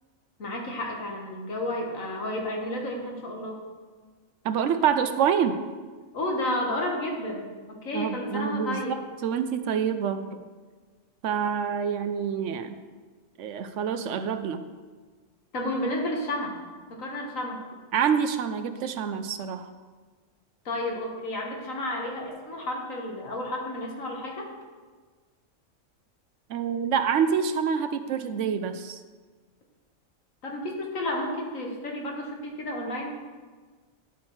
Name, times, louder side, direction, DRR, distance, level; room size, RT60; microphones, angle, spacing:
voice 1, 0.4-3.6 6.1-9.0 15.5-16.6 16.9-17.6 20.7-24.5 30.4-33.1, left 1 dB, 80° left, 0 dB, 1.9 m, -31 dB
voice 2, 4.4-5.6 7.9-10.4 11.2-12.7 13.4-14.6 17.9-19.7 26.5-29.0, right 7 dB, 70° right, 10 dB, 0.9 m, -27 dB
10.5 x 8.5 x 3.1 m, 1.4 s
omnidirectional pair, 1.4 m